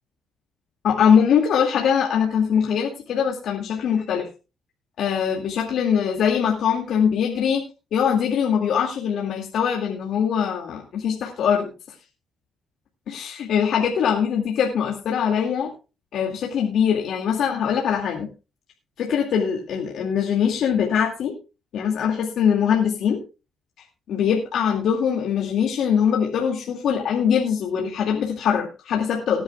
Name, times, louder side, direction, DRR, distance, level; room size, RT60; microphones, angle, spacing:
voice 1, 0.8-4.3 5.0-7.6 7.9-11.7 13.1-15.7 16.1-18.3 19.0-21.3 21.7-23.2 24.1-29.4, left 7 dB, 75° left, 0 dB, 2.3 m, -22 dB
19.5 x 10.0 x 2.4 m, 0.30 s
cardioid pair, 90°, 0 cm